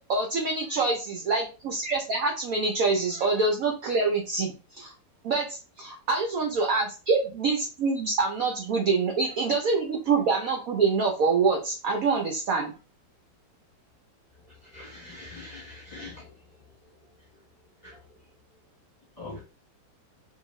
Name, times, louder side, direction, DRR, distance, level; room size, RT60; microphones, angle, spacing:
voice 1, 0.1-4.9 5.2-12.7, right 4 dB, 70° right, 1 dB, 0.8 m, -26 dB
voice 2, 14.6-16.3 17.8-18.0 19.2-19.5, left 2 dB, 30° left, -6 dB, 1.0 m, -42 dB
2.7 x 2.5 x 3.0 m, 0.33 s
omnidirectional pair, 2.0 m